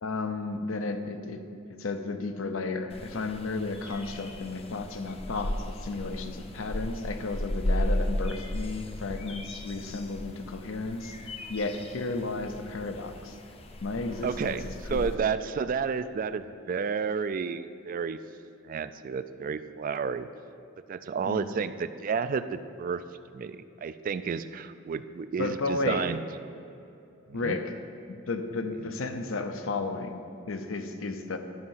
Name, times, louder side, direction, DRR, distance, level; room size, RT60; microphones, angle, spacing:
voice 1, 0.0-1.4 1.7-11.2 11.5-13.4 13.8-15.1 21.2-21.5 25.4-26.1 27.3-27.7 28.1-31.4, left 3 dB, 80° left, 7 dB, 0.7 m, -33 dB
sound 1, 2.9-15.1, left 1 dB, 30° left, 0.6 m, -35 dB
voice 2, 14.2-14.6 14.9-18.2 18.6-20.3 20.9-23.0 23.3-26.2 27.3-27.6, right 6 dB, 45° right, 13 dB, 0.3 m, -31 dB
11.5 x 5.3 x 5.6 m, 2.7 s
head